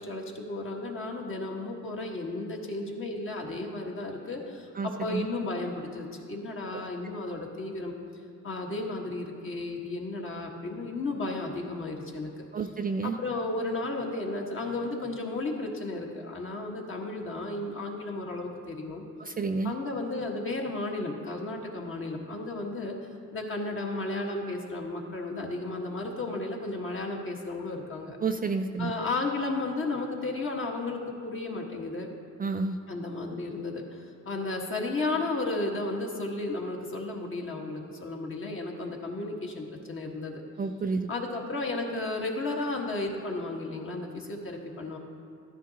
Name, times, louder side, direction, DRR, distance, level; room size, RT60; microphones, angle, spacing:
voice 1, 0.0-7.9 8.4-12.4 13.0-19.0 19.6-23.0 23.3-28.2 28.8-32.1 32.9-40.4 41.1-45.0, left 2 dB, 45° left, 0 dB, 1.5 m, -33 dB
voice 2, 4.8-5.3 6.7-6.8 12.5-13.2 19.2-19.8 28.2-28.9 32.4-32.8 40.6-41.1, right 4 dB, 30° right, 6 dB, 0.4 m, -30 dB
13.0 x 10.0 x 2.9 m, 2.4 s
cardioid pair, 90°, 30 cm